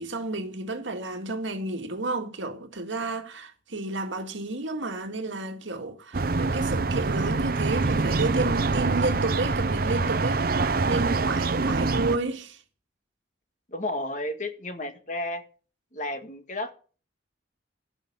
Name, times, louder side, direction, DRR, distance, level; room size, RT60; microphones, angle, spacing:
voice 1, 0.0-10.4 10.9-12.6, right 2 dB, 85° right, 2.0 m, -31 dB
sound 1, 6.1-12.2, right 3 dB, 50° right, 0.7 m, -25 dB
voice 2, 13.7-15.4 15.9-16.7, left 1 dB, 40° left, 1.8 m, -32 dB
16.5 x 5.8 x 8.7 m
head